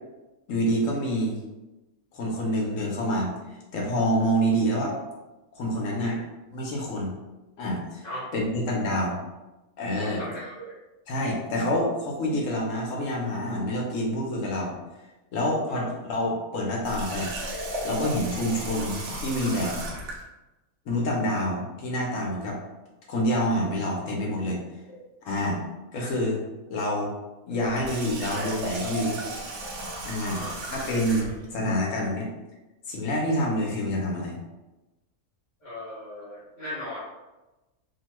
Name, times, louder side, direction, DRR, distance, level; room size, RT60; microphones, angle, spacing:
voice 1, 0.5-1.4 2.1-3.3 3.7-4.9 5.5-6.2 6.5-7.1 7.6-8.0 8.3-9.2 9.8-10.2 11.1-14.7 15.3-19.8 20.9-22.6 23.1-24.6 25.2-25.6 25.9-26.4 26.7-27.1 27.5-29.2 30.0-32.3 32.9-34.4, equal, 75° left, -2 dB, 1.1 m, -27 dB
voice 2, 10.0-10.7 15.7-15.9 30.3-30.6 35.6-37.0, left 1 dB, 45° left, -10 dB, 0.7 m, -38 dB
Water tap faucet, 16.8-20.2 27.6-31.5, right 1 dB, 65° right, 0.9 m, -35 dB
2.8 x 2.2 x 3.0 m, 1.1 s
omnidirectional pair, 1.4 m